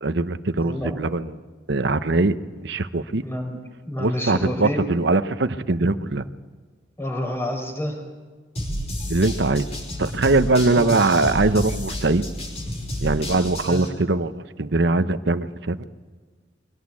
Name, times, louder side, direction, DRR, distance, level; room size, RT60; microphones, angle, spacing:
voice 1, 0.0-1.3 1.7-3.2 4.0-6.2 9.1-9.7 10.0-12.2 13.0-15.8, right 2 dB, 65° right, 11 dB, 0.9 m, -21 dB
voice 2, 3.2-3.6 3.9-4.8 7.0-8.0 10.8-11.0 13.7-13.8, left 1 dB, 15° left, 1 dB, 5.2 m, -28 dB
sound 1, 8.6-13.9, equal, 35° left, 5.1 m, -30 dB
24.0 x 18.0 x 8.5 m, 1.5 s
head